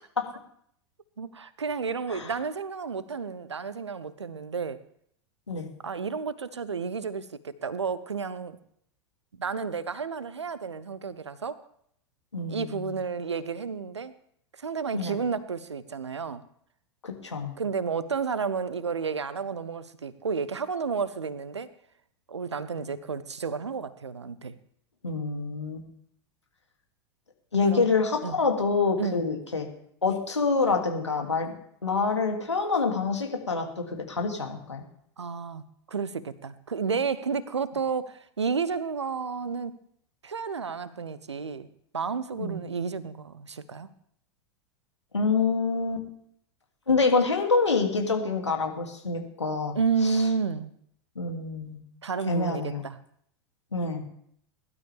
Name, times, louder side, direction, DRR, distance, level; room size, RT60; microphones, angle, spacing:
voice 1, 1.2-4.8 5.8-8.6 9.4-11.6 12.5-14.1 14.6-16.4 17.6-21.7 22.3-24.5 27.6-27.9 28.2-28.4 29.0-29.3 35.2-39.8 40.2-41.7 41.9-43.9 49.7-50.7 52.0-53.0, right 5 dB, 75° right, 16 dB, 0.9 m, -31 dB
voice 2, 12.3-12.9 14.9-15.2 17.0-17.6 25.0-25.8 27.5-29.7 30.0-31.5 31.8-34.8 42.4-42.6 45.1-46.1 46.9-49.8 51.2-51.8 52.3-52.8 53.7-54.0, left 4 dB, 80° left, 2 dB, 2.6 m, -26 dB
21.0 x 12.5 x 3.5 m, 0.69 s
figure-of-eight pair, 90°, 15 cm